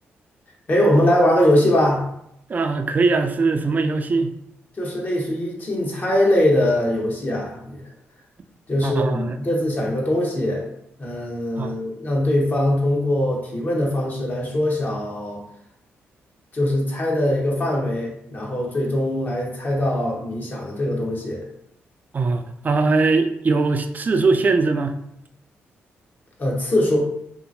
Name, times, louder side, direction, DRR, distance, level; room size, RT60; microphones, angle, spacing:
voice 1, 0.7-2.0 4.8-7.8 8.7-10.6 11.0-15.4 16.5-21.4 26.4-27.0, left 1 dB, 40° left, -2 dB, 0.9 m, -21 dB
voice 2, 2.5-4.3 8.8-9.4 11.6-11.8 22.1-25.0, right 3 dB, 35° right, 7 dB, 0.3 m, -21 dB
2.7 x 2.5 x 2.6 m, 0.75 s
cardioid pair, 70°, 5 cm